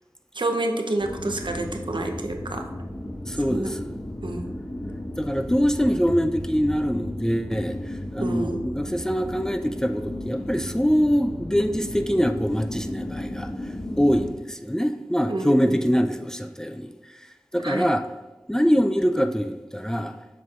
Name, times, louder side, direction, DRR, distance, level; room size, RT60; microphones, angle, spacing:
voice 1, 0.3-2.7 3.5-3.7 4.2-4.6 8.2-8.6 15.3-15.8 17.6-17.9, right 2 dB, 90° right, 4 dB, 0.6 m, -28 dB
sound 1, 1.0-14.3, left 1 dB, 50° left, 1.0 m, -34 dB
voice 2, 3.3-3.9 5.2-13.5 14.0-17.2 17.5-18.0 18.5-20.2, equal, 5° left, 7 dB, 0.4 m, -24 dB
7.3 x 6.1 x 2.4 m, 1.1 s
wide cardioid pair, 45°, 8 cm